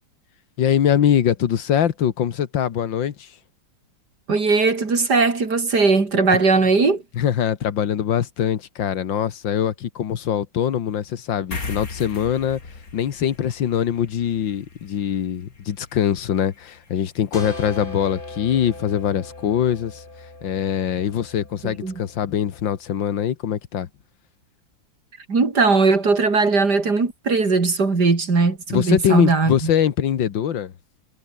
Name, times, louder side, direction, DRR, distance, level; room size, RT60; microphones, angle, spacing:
voice 1, 0.6-3.3 7.1-12.6 12.9-20.0 20.4-23.9 28.7-30.7, left 9 dB, 80° left, 2.0 m, -23 dB
voice 2, 4.3-7.0 21.6-21.9 25.3-29.7, right 4 dB, 60° right, 4.0 m, -19 dB
sound 1, 11.5-18.3, left 3 dB, 50° left, 3.8 m, -39 dB
sound 2, 17.3-22.8, left 2 dB, 25° left, 3.4 m, -39 dB
omnidirectional pair, 2.0 m